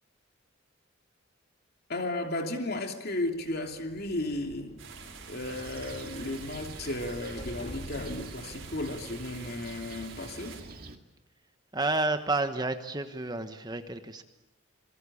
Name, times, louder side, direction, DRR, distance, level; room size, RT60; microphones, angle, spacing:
voice 1, 1.9-4.8 5.3-10.6, left 1 dB, 50° left, 2.9 m, -34 dB
sound 1, 3.3-10.0, equal, 35° left, 3.0 m, -48 dB
sound 2, 4.8-10.6, right 7 dB, 70° right, 5.8 m, -48 dB
Fixed-wing aircraft airplane, 5.4-11.0, right 2 dB, 45° right, 2.3 m, -46 dB
voice 2, 11.7-14.2, right 2 dB, 20° right, 1.3 m, -30 dB
27.5 x 24.0 x 8.6 m
head